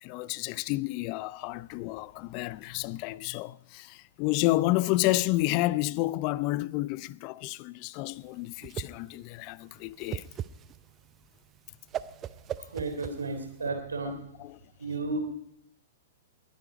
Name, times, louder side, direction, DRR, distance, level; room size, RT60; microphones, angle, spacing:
voice 1, 0.0-10.3 14.4-14.6, left 18 dB, 40° left, 0.4 m, -30 dB
Whoosh swoosh swish, 8.2-13.7, right 10 dB, 25° right, 0.5 m, -39 dB
voice 2, 12.6-14.2 14.8-15.2, right 3 dB, 75° right, 3.4 m, -33 dB
21.0 x 9.3 x 5.1 m
figure-of-eight pair, 110°, 0 cm